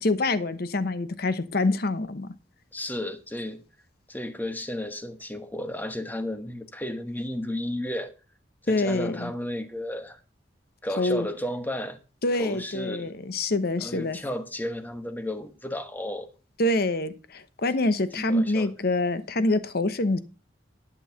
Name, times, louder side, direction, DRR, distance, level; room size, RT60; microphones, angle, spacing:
voice 1, 0.0-2.3 8.7-9.3 11.0-11.3 12.2-14.2 16.6-20.2, left 2 dB, 55° left, 0.9 m, -26 dB
voice 2, 2.7-3.6 4.1-8.1 8.6-10.2 10.8-12.0 12.3-13.1 13.8-16.3 18.1-18.7, left 1 dB, 10° left, 1.1 m, -33 dB
11.5 x 6.3 x 5.8 m
head